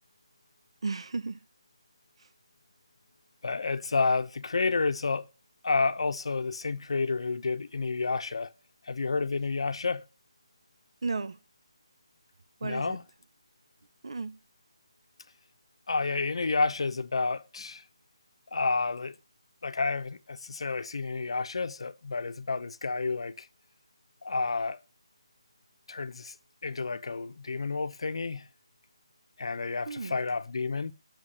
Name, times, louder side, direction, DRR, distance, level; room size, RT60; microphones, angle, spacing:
voice 1, 0.8-1.4 11.0-11.4 12.6-13.0 14.0-14.4 29.9-30.2, right 4 dB, 65° right, 0.7 m, -34 dB
voice 2, 3.4-5.3 5.6-8.5 8.8-10.1 12.6-13.0 15.9-17.8 18.5-19.2 19.6-23.5 24.2-24.8 25.9-26.3 26.6-28.5 29.4-30.9, left 4 dB, 65° left, 0.8 m, -30 dB
8.2 x 6.5 x 6.5 m
figure-of-eight pair, 160°, 3 cm